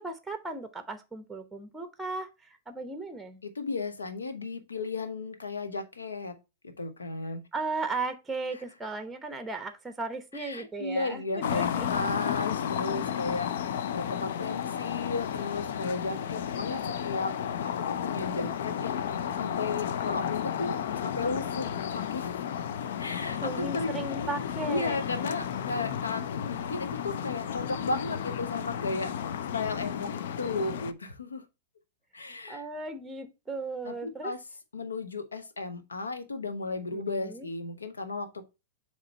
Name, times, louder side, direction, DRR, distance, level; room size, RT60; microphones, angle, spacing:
voice 1, 0.0-3.4 7.5-11.9 23.4-25.0 32.5-34.3 36.9-37.5, right 3 dB, 10° right, 0.8 m, -36 dB
voice 2, 3.4-6.3 6.6-7.4 10.3-17.3 17.6-17.7 18.0-22.4 23.0-23.9 24.7-31.4 32.1-32.6 33.8-34.4 34.7-38.5, left 3 dB, 85° left, 1.0 m, -34 dB
sound 1, 11.4-30.9, left 8 dB, 65° left, 0.5 m, -33 dB
7.6 x 3.1 x 4.1 m
hypercardioid pair, 105°, 0 cm